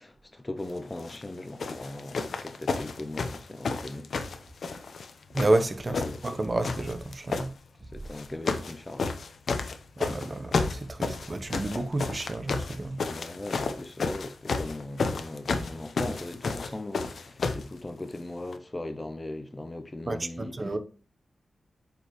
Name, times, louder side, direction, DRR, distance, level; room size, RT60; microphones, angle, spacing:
voice 1, 0.0-4.1 5.9-6.2 7.9-9.1 13.1-20.6, left 2 dB, 20° left, 0.7 m, -39 dB
sound 1, 1.0-1.2 1.6-5.1 5.3-6.3 6.6-7.5 8.1-8.7 9.0-17.7 18.5-18.6, left 4 dB, 70° left, 0.8 m, -31 dB
voice 2, 5.3-7.5 10.0-13.0 20.1-20.8, right 2 dB, 30° right, 0.9 m, -30 dB
8.5 x 5.1 x 3.1 m
wide cardioid pair, 90°, 0 cm